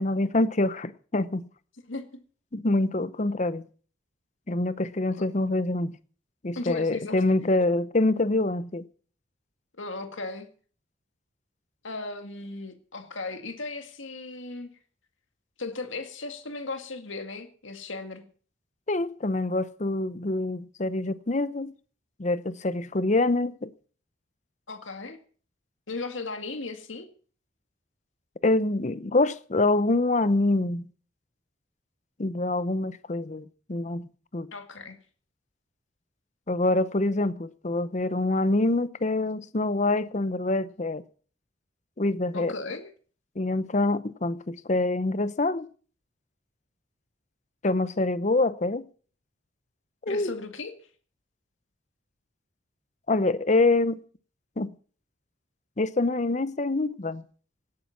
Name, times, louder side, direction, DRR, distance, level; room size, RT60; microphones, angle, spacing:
voice 1, 0.0-1.5 2.5-3.6 4.5-6.0 6.4-8.8 18.9-21.7 22.2-23.7 28.4-30.8 32.2-34.1 34.3-34.5 36.5-41.0 42.0-42.5 43.4-45.7 47.6-48.8 50.0-50.3 53.1-54.0 54.6-54.7 55.8-57.2, left 2 dB, 40° left, 0.7 m, -25 dB
voice 2, 6.6-7.2 9.8-10.5 11.8-14.7 15.6-18.2 24.7-25.2 25.9-27.1 34.5-35.0 42.3-42.8 50.1-50.7, left 3 dB, 85° left, 2.0 m, -36 dB
17.5 x 9.7 x 5.9 m
head